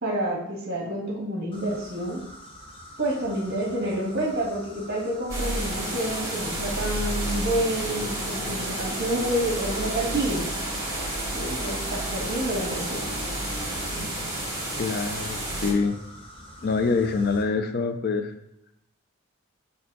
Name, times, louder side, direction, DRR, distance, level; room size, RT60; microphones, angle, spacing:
voice 1, 0.0-2.2 3.0-10.5 11.3-13.1, right 1 dB, 45° right, -2 dB, 1.7 m, -28 dB
sound 1, 1.5-17.4, equal, 25° left, 0.8 m, -46 dB
sound 2, 5.3-15.7, right 1 dB, 15° right, 1.5 m, -30 dB
voice 2, 14.8-15.9 16.6-18.3, left 4 dB, 45° left, 8 dB, 0.4 m, -25 dB
5.4 x 4.3 x 4.0 m, 0.84 s
head